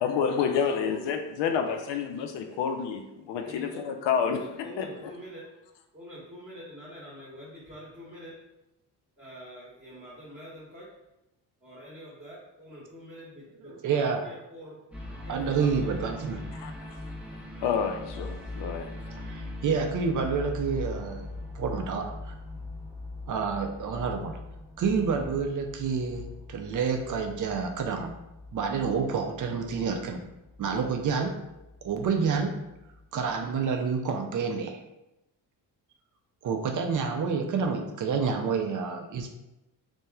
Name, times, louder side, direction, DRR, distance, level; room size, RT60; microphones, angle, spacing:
voice 1, 0.0-5.1 16.5-16.7 17.6-19.2, left 6 dB, 60° left, 5 dB, 0.5 m, -29 dB
voice 2, 3.4-3.9 4.2-5.5 5.9-8.4 9.2-10.9 11.6-14.8 15.2-16.1 18.6-18.9, equal, 20° right, -9 dB, 1.1 m, -46 dB
voice 3, 13.8-14.3 15.3-16.4 19.2-21.3 21.5-22.3 23.3-24.4 24.8-26.2 26.5-28.1 28.5-30.2 30.6-31.3 31.8-32.5 33.1-34.8 36.4-39.3, right 5 dB, 40° right, 4 dB, 0.4 m, -28 dB
sound 1, 14.9-33.3 33.7-33.8, left 2 dB, 5° right, 0.8 m, -41 dB
2.8 x 2.2 x 2.3 m, 0.93 s
supercardioid pair, 60°, 49 cm